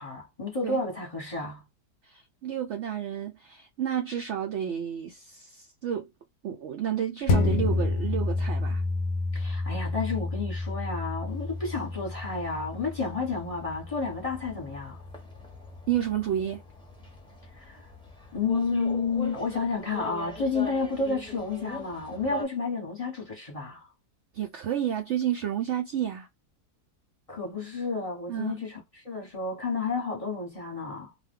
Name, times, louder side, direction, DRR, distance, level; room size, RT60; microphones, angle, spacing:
voice 1, 0.0-1.6 9.3-15.0 17.6-17.8 18.3-23.9 27.3-28.7 29.0-31.1, left 4 dB, 25° left, 1.0 m, -31 dB
voice 2, 2.0-6.1 6.4-8.8 15.9-16.6 24.3-26.3 28.3-28.6, right 10 dB, 80° right, 0.6 m, -31 dB
sound 1, 7.3-16.1 16.5-16.6, left 3 dB, 65° left, 0.7 m, -30 dB
sound 2, 11.3-22.5, left 2 dB, 5° left, 0.6 m, -43 dB
2.5 x 2.2 x 3.5 m
omnidirectional pair, 1.7 m